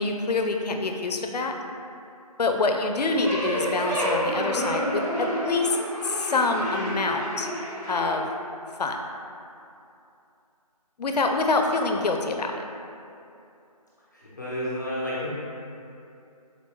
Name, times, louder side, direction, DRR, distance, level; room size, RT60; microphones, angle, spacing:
voice 1, 0.0-1.5 2.4-5.8 6.0-7.5 7.9-8.3 8.8-9.0 11.0-12.6, left 3 dB, 90° left, 4 dB, 0.4 m, -26 dB
sound 1, 3.2-8.0, equal, 90° right, 1.4 m, -29 dB
voice 2, 14.1-15.3, equal, 30° left, -9 dB, 0.5 m, -31 dB
4.0 x 2.2 x 2.9 m, 2.6 s
figure-of-eight pair, 170°, 20 cm